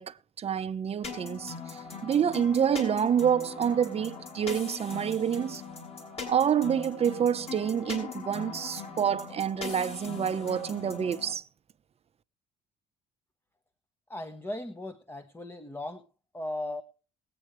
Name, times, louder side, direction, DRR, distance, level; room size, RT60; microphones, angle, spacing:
voice 1, 0.0-5.6 6.3-11.4, right 8 dB, 35° right, 0.8 m, -28 dB
sound 1, 1.0-11.3, left 5 dB, 35° left, 5.4 m, -40 dB
voice 2, 14.1-16.0 16.3-16.8, left 1 dB, 15° left, 1.1 m, -37 dB
20.5 x 8.7 x 3.2 m
cardioid pair, 110°, 17 cm